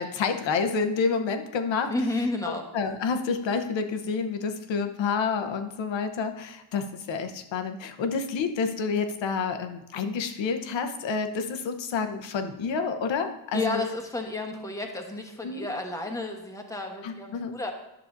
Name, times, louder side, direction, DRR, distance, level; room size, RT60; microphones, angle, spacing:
voice 1, 0.0-1.9 2.7-13.8 15.4-15.7 17.0-17.6, left 5 dB, 65° left, 6 dB, 1.0 m, -29 dB
voice 2, 1.9-2.6 13.5-17.7, left 2 dB, 5° left, 2 dB, 1.1 m, -31 dB
11.0 x 6.6 x 2.6 m, 0.94 s
cardioid pair, 105°, 49 cm